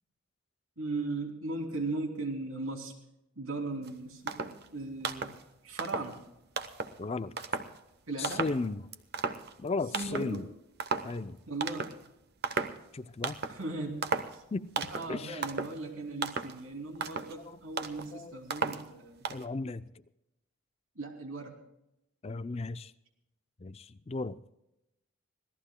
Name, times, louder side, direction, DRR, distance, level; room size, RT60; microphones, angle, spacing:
voice 1, 0.8-3.0 3.4-5.3 5.6-6.2 8.1-8.5 9.9-10.4 11.5-11.9 13.5-14.4 14.8-19.3 20.9-21.6, right 2 dB, 75° right, 2.9 m, -38 dB
sound 1, 3.8-3.9 4.3-4.7 5.0-5.4 5.8-6.2 6.6-7.0 7.4-7.8 8.2-8.7 8.9-9.7 9.9-10.4 10.8-11.2 11.6-12.1 12.4-12.8 13.2-13.6 14.0-14.4 14.8-15.1 15.4-15.8 16.2-16.6 17.0-17.4 17.8-18.1 18.5-18.9 19.3-19.5, right 4 dB, 50° right, 0.9 m, -35 dB
voice 2, 7.0-7.3 8.2-8.9 9.6-10.5 11.0-11.4 12.9-13.4 14.5-14.7 15.1-15.4 17.4-17.6 18.1-18.4 19.3-19.8 22.2-22.9 23.6-24.4, left 3 dB, 30° left, 0.4 m, -35 dB
26.0 x 17.5 x 2.2 m
head